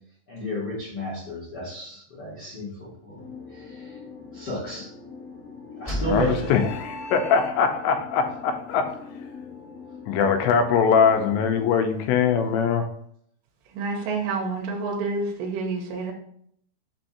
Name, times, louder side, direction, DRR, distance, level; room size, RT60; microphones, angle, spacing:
voice 1, 0.3-3.2 3.5-3.9 4.3-4.9 5.8-6.5, equal, 45° left, -7 dB, 1.3 m, -32 dB
sound 1, 3.2-11.7, left 5 dB, 60° left, 1.7 m, -42 dB
sound 2, 5.8-7.9, right 1 dB, 15° left, 0.7 m, -34 dB
voice 2, 5.9-9.0 10.1-12.9, left 6 dB, 85° left, 6 dB, 3.0 m, -22 dB
voice 3, 13.7-16.1, right 3 dB, 90° right, 1 dB, 3.1 m, -28 dB
6.9 x 2.6 x 5.7 m, 0.67 s
omnidirectional pair, 5.0 m